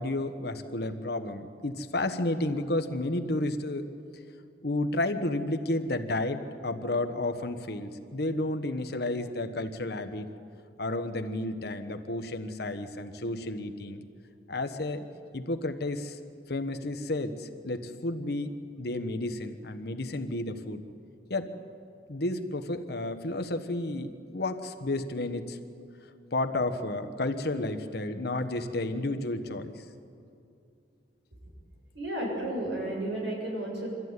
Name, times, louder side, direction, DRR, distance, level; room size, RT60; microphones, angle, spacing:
voice 1, 0.0-3.9 4.6-10.3 10.8-14.0 14.5-15.0 15.3-16.2 16.5-20.8 21.3-21.5 22.1-25.6 26.3-29.8, left 2 dB, 60° left, 8 dB, 1.3 m, -31 dB
voice 2, 31.9-33.9, right 1 dB, 85° right, -2 dB, 7.4 m, -32 dB
24.5 x 14.0 x 9.6 m, 2.5 s
head